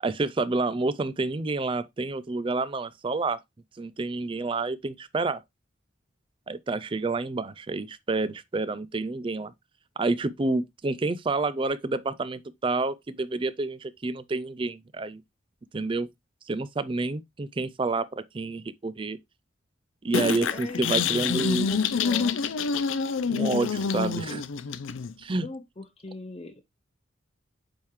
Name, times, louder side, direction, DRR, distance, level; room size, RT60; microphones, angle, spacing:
voice 1, 0.0-3.4 3.8-5.4 6.5-9.5 10.0-15.2 15.7-16.1 16.5-19.2 20.0-21.7 23.3-24.4 25.2-25.5, right 3 dB, 25° right, 0.4 m, -29 dB
sound 1, 20.1-25.1, left 6 dB, 90° left, 0.5 m, -27 dB
voice 2, 20.5-20.9 21.2-22.4 25.4-26.6, left 2 dB, 30° left, 0.6 m, -39 dB
8.7 x 3.7 x 3.1 m
head